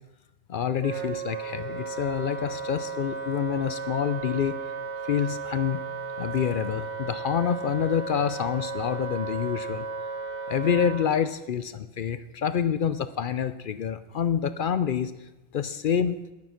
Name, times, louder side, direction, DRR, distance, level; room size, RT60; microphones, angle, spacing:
voice 1, 0.5-4.6 5.0-5.8 6.2-9.8 10.5-15.1 15.5-16.2, left 8 dB, 60° left, 12 dB, 0.6 m, -27 dB
Wind instrument woodwind instrument, 0.8-11.1, right 4 dB, 80° right, 1.5 m, -35 dB
11.0 x 9.1 x 5.8 m, 1.0 s
omnidirectional pair, 1.2 m